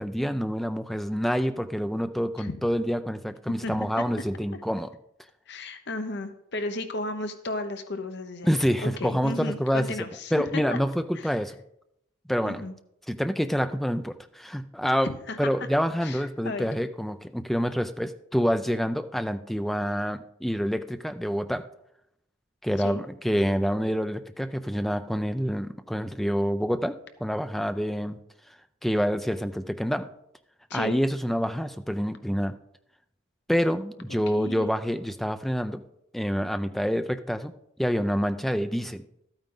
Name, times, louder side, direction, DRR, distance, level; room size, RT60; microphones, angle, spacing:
voice 1, 0.0-4.9 8.4-9.9 10.3-11.5 12.3-12.6 13.1-15.1 15.4-21.6 22.6-27.0 27.2-28.2 28.8-30.1 30.7-32.5 33.5-35.8 36.1-37.5 37.8-39.1, equal, ahead, 9 dB, 0.4 m, -27 dB
voice 2, 3.6-4.0 5.5-8.5 8.8-10.8 11.1-11.3 12.4-12.7 15.0-15.7 16.0-16.7 22.8-23.0 30.7-31.0 34.3-34.7, left 2 dB, 55° left, 8 dB, 0.8 m, -34 dB
12.5 x 9.0 x 3.8 m, 0.79 s
head